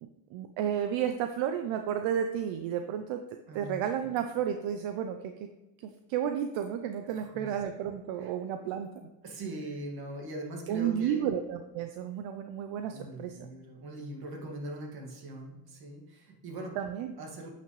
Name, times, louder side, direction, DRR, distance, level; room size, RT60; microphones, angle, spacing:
voice 1, 0.0-3.2 3.5-5.3 5.8-9.1 10.7-13.5 16.8-17.1, right 9 dB, 75° right, 7 dB, 0.7 m, -32 dB
voice 2, 3.5-4.0 7.1-7.6 8.2-8.3 9.2-11.3 12.9-16.8 17.2-17.5, right 1 dB, 50° right, 1 dB, 2.1 m, -41 dB
8.9 x 6.0 x 3.2 m, 1.1 s
cardioid pair, 105°, 47 cm